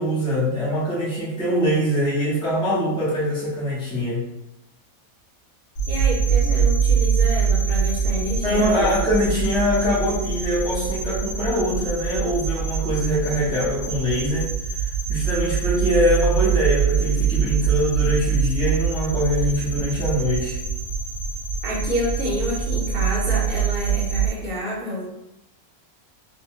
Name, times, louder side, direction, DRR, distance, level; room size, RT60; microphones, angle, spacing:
voice 1, 0.0-4.3 8.4-20.6, equal, 5° left, -7 dB, 0.5 m, -23 dB
sound 1, 5.8-24.3, right 7 dB, 70° left, 1.0 m, -24 dB
voice 2, 5.9-9.0 21.6-25.0, left 1 dB, 45° right, -4 dB, 0.9 m, -28 dB
2.7 x 2.1 x 2.8 m, 0.88 s
omnidirectional pair, 1.5 m